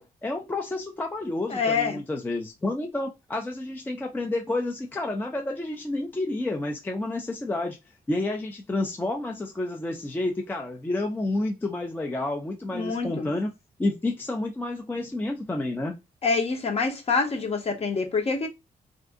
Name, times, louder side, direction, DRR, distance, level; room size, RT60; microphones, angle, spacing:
voice 1, 0.0-7.8 8.1-13.5 13.8-16.0, left 2 dB, 10° left, 0.4 m, -30 dB
voice 2, 1.5-2.0 12.7-13.3 16.2-18.5, left 4 dB, 40° left, 0.9 m, -26 dB
2.5 x 2.5 x 3.5 m
cardioid pair, 130°, 16 cm